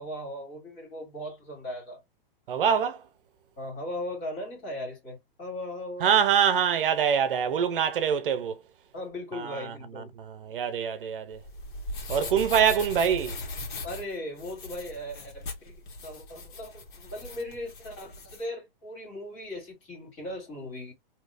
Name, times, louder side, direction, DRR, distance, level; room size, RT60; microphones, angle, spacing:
voice 1, 0.0-2.0 3.6-6.1 8.9-10.1 12.3-12.5 13.8-15.8 16.0-20.9, left 1 dB, 25° left, 2.4 m, -38 dB
voice 2, 2.5-3.0 6.0-8.6 9.3-11.4 12.1-13.4, right 8 dB, 65° right, 0.7 m, -25 dB
sound 1, 11.3-18.4, left 2 dB, 55° left, 1.6 m, -39 dB
3.5 x 2.9 x 2.6 m
hypercardioid pair, 165°, 29 cm